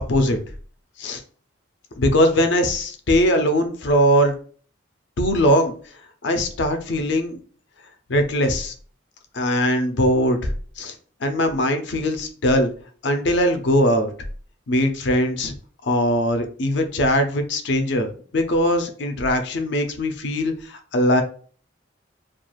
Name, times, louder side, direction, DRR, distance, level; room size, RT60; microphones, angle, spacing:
voice 1, 2.0-4.3 5.2-5.7 6.2-7.4 8.1-8.7 9.3-10.5 10.8-10.9 11.2-12.7 13.0-14.1 14.7-15.5 15.8-18.1 18.3-21.2, equal, 60° left, 7 dB, 0.4 m, -20 dB
2.3 x 2.3 x 3.0 m, 0.43 s
head